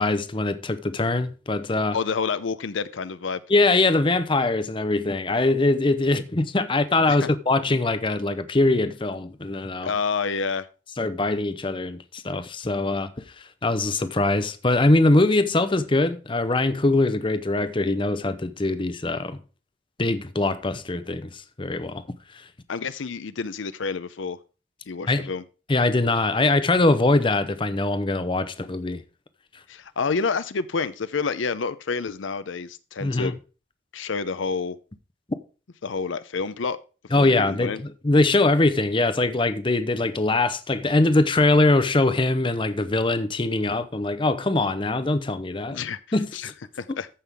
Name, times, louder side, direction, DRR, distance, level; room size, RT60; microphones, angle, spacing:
voice 1, 0.0-2.0 3.5-9.9 11.0-13.1 13.4-19.4 20.0-22.0 22.3-22.5 25.1-25.3 25.7-29.0 33.0-33.4 37.1-45.8 46.1-46.3, left 2 dB, 25° left, 0.7 m, -22 dB
voice 2, 1.9-3.4 7.1-7.3 9.8-10.7 22.7-24.4 24.9-25.4 29.7-33.3 33.9-34.8 35.8-36.8 37.1-37.8 45.7-47.1, left 5 dB, 80° left, 0.6 m, -29 dB
14.0 x 5.7 x 3.5 m
head